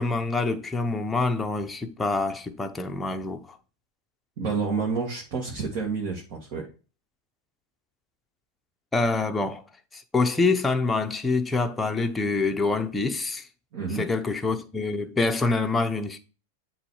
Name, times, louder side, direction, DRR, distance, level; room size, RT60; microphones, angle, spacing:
voice 1, 0.0-3.6 8.9-9.6 9.9-13.5 13.9-16.2, left 3 dB, 10° left, 0.7 m, -26 dB
voice 2, 4.4-6.7 13.7-14.0, right 5 dB, 50° right, 1.9 m, -29 dB
8.2 x 3.1 x 4.8 m
supercardioid pair, 135°, 0 cm